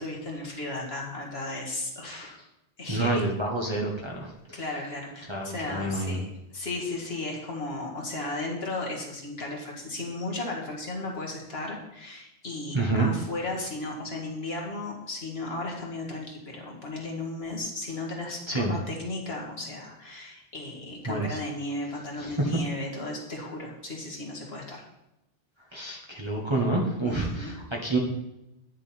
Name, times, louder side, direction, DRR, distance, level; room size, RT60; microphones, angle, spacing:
voice 1, 0.0-2.4 2.8-3.2 4.5-24.8 27.0-27.6, left 2 dB, 60° left, -1 dB, 2.0 m, -35 dB
voice 2, 2.9-4.3 5.3-6.2 12.7-13.1 18.5-18.8 21.1-21.4 22.2-22.5 25.7-28.0, right 2 dB, 25° right, -1 dB, 1.3 m, -28 dB
10.0 x 6.3 x 4.3 m, 0.90 s
omnidirectional pair, 1.2 m